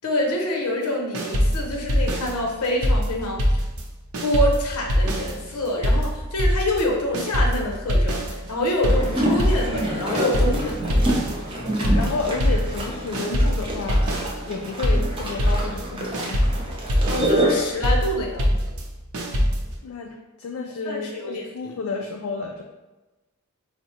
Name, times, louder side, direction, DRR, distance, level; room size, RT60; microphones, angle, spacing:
voice 1, 0.0-3.4 4.2-11.1 17.1-18.6 20.8-21.8, left 1 dB, 90° left, 0 dB, 0.7 m, -26 dB
sound 1, 1.1-3.9 4.1-19.8, equal, 75° right, 0.6 m, -23 dB
sound 2, 8.8-17.7, right 1 dB, 25° right, 0.5 m, -27 dB
voice 2, 11.6-14.0 14.5-16.6 19.3-19.5 19.8-22.6, left 4 dB, 65° left, 2 dB, 0.3 m, -31 dB
4.6 x 2.0 x 2.8 m, 1.1 s
head